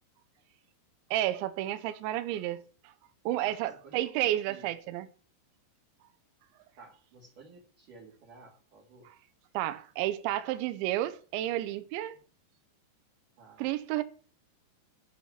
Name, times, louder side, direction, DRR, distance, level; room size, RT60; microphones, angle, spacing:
voice 1, 1.1-2.6 3.3-5.1 9.5-12.2 13.6-14.0, right 14 dB, 80° right, 3.0 m, -31 dB
voice 2, 3.8-4.7 6.8-9.1 12.1-12.3 13.4-13.7, right 4 dB, 55° right, 3.0 m, -54 dB
11.0 x 6.2 x 8.6 m
omnidirectional pair, 5.4 m